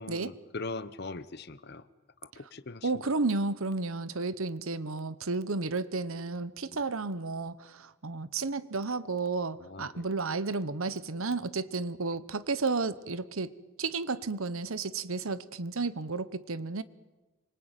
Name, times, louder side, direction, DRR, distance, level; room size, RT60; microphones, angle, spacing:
voice 1, 0.0-1.9 2.2-3.1 9.6-10.1, left 3 dB, 50° left, 14 dB, 1.0 m, -41 dB
voice 2, 2.8-13.5 13.8-16.8, right 3 dB, 70° right, 15 dB, 1.1 m, -32 dB
26.0 x 24.5 x 9.1 m, 1.1 s
head